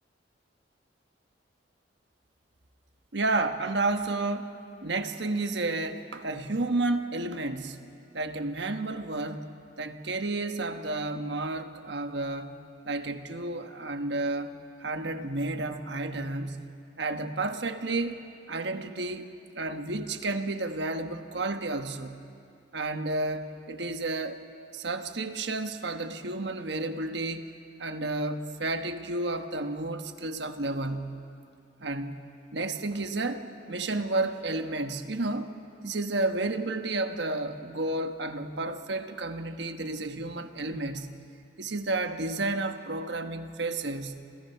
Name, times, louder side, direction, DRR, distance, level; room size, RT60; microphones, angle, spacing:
voice 1, 3.1-4.6 4.8-7.8 8.1-9.4 9.8-12.5 12.8-14.5 14.8-16.7 17.0-18.2 18.5-19.3 19.5-22.2 22.7-24.4 24.7-27.5 27.8-31.2 31.8-32.2 32.5-35.5 35.8-41.1 41.6-44.2, right 2 dB, 65° right, 7 dB, 1.3 m, -31 dB
29.5 x 25.5 x 5.7 m, 2.5 s
head